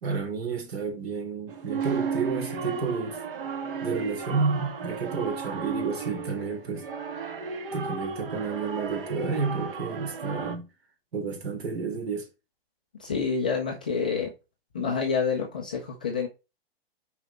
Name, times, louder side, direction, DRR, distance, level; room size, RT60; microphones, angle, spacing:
voice 1, 0.0-3.2 3.8-6.9 7.2-7.3 7.7-10.7 11.1-12.3 14.8-14.9, right 5 dB, 80° right, 3.6 m, -30 dB
sound 1, 1.5-10.6, right 5 dB, 60° right, 1.8 m, -34 dB
voice 2, 13.0-14.3 14.7-16.3, left 5 dB, 10° left, 0.3 m, -28 dB
6.4 x 5.0 x 4.2 m
hypercardioid pair, 170°, 30 cm